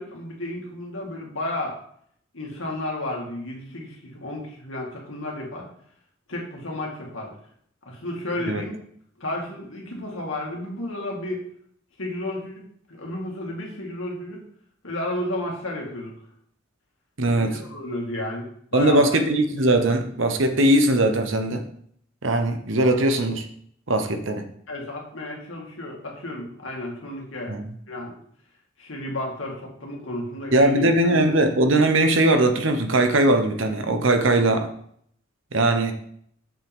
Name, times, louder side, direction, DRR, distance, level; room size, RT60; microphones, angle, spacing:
voice 1, 0.0-1.8 2.3-5.7 6.3-7.3 7.9-8.8 9.2-11.4 12.0-14.4 14.8-16.1 17.3-19.2 24.7-27.6 27.9-28.2 28.8-30.9, left 1 dB, 75° left, -1 dB, 2.3 m, -32 dB
voice 2, 17.2-17.6 18.7-21.7 22.2-23.4 23.9-24.5 27.5-27.7 30.5-34.7 35.5-35.9, right 1 dB, 65° right, 7 dB, 1.0 m, -20 dB
7.5 x 7.4 x 3.6 m, 0.65 s
head